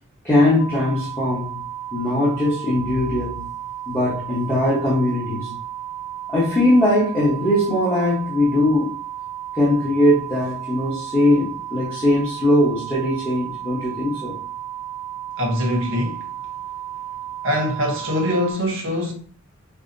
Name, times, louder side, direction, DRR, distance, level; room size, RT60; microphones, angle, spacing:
voice 1, 0.2-1.6 1.9-3.5 3.9-5.6 6.3-8.9 9.5-14.4, left 1 dB, 10° left, 1.0 m, -20 dB
sound 1, 0.6-18.5, right 11 dB, 80° left, 0.9 m, -33 dB
voice 2, 15.4-16.3 17.4-19.1, equal, 60° right, 1.1 m, -23 dB
5.5 x 2.2 x 2.7 m
head